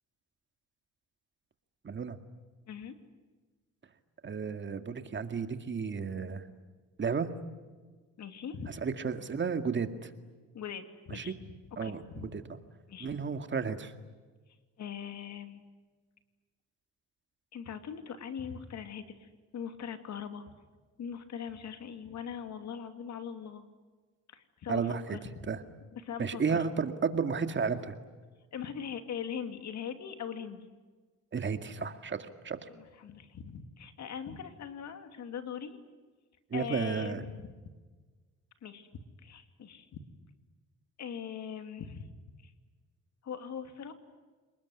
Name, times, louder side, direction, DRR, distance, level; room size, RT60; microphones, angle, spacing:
voice 1, 1.8-2.2 4.2-6.4 7.0-7.3 8.7-10.1 11.1-11.3 11.8-12.0 12.3-12.4 13.0-13.9 24.7-25.2 25.5-25.6 26.2-28.0 31.3-32.6 36.5-37.2, right 5 dB, 40° right, 8 dB, 2.1 m, -32 dB
voice 2, 8.2-8.7 10.5-11.3 11.7-12.4 12.9-13.1 14.8-15.6 17.5-20.4 21.0-23.6 24.3-25.3 25.9-26.7 28.5-30.7 32.7-35.8 36.5-37.6 38.6-40.0 41.0-42.1 42.4-42.5 43.2-43.9, left 7 dB, 65° left, 8 dB, 2.8 m, -41 dB
29.0 x 20.0 x 9.8 m, 1.4 s
cardioid pair, 90°, 30 cm